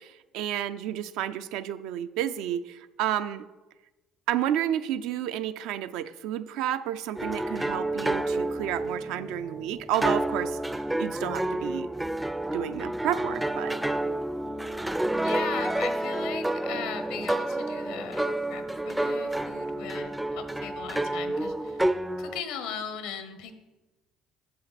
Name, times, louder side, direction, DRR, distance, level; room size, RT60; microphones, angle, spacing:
voice 1, 0.0-3.4 4.3-10.6 11.0-11.9 12.5-13.8, right 11 dB, 75° right, 11 dB, 0.4 m, -31 dB
sound 1, 7.1-22.4, right 1 dB, 5° right, 0.4 m, -29 dB
voice 2, 15.2-21.9 22.2-23.5, left 7 dB, 80° left, 9 dB, 0.9 m, -38 dB
8.5 x 7.0 x 4.1 m, 1.1 s
supercardioid pair, 85°, 0 cm